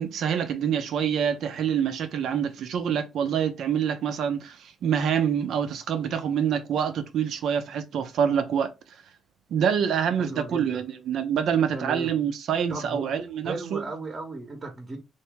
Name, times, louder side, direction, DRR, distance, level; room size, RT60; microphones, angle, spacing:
voice 1, 0.0-4.6 4.8-8.7 9.5-13.9, right 8 dB, 70° right, 0.6 m, -26 dB
voice 2, 10.2-10.8 11.7-12.1 12.7-13.2 13.4-15.0, right 3 dB, 35° right, 1.0 m, -35 dB
2.9 x 2.7 x 3.5 m
cardioid pair, 90°, 0 cm